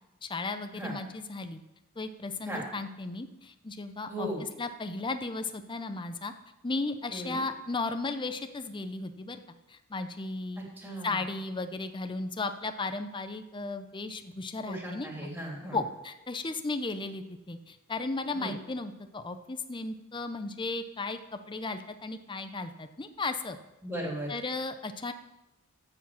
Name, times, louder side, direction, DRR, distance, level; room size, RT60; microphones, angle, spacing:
voice 1, 0.2-1.6 2.0-4.3 4.6-6.3 6.6-9.4 9.7-10.6 11.0-15.3 15.7-21.2 21.5-23.6 24.3-25.1, left 3 dB, 25° left, 8 dB, 0.6 m, -35 dB
voice 2, 4.1-4.4 7.1-7.4 10.6-11.2 14.7-15.8 18.3-18.5 23.8-24.3, right 1 dB, 10° right, -2 dB, 2.9 m, -37 dB
14.0 x 4.8 x 7.5 m, 0.93 s
head